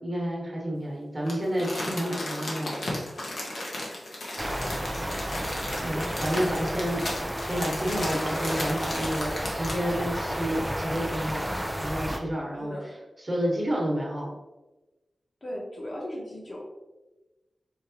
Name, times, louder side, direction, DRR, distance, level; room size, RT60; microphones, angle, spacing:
voice 1, 0.0-2.7 5.8-11.5 11.8-12.7 13.2-14.3, equal, 30° right, -4 dB, 1.2 m, -30 dB
Crumpling crinkling, 1.3-9.9 10.4-10.5, left 1 dB, 70° left, 1.1 m, -35 dB
sound 1, 4.4-12.2, equal, 5° right, 0.4 m, -32 dB
voice 2, 4.6-5.2 6.3-6.8 12.5-13.0 15.4-16.7, left 1 dB, 40° left, -3 dB, 1.1 m, -39 dB
4.8 x 3.3 x 2.8 m, 1.1 s
wide cardioid pair, 90°, 0 cm